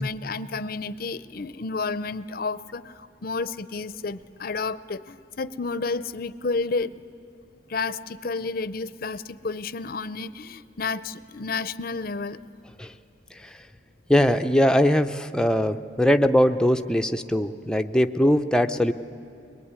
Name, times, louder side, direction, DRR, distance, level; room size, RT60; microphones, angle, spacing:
voice 1, 0.0-6.9 7.7-12.4, left 4 dB, 50° left, 16 dB, 0.6 m, -31 dB
voice 2, 14.1-18.9, left 1 dB, 5° left, 7 dB, 0.6 m, -21 dB
22.5 x 22.0 x 9.6 m, 2.7 s
head